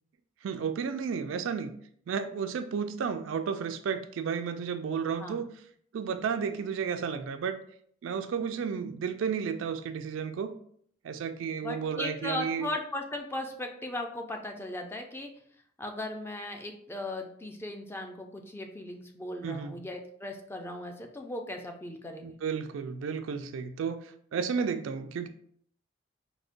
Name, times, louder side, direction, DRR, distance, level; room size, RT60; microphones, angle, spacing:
voice 1, 0.4-1.7 2.1-5.5 5.9-7.6 8.0-10.6 11.0-12.7 19.4-19.8 22.2-25.3, right 6 dB, 80° right, 9 dB, 0.3 m, -32 dB
voice 2, 11.6-15.3 15.8-22.4, left 1 dB, 10° left, 3 dB, 0.3 m, -37 dB
4.8 x 2.1 x 2.5 m, 0.62 s
head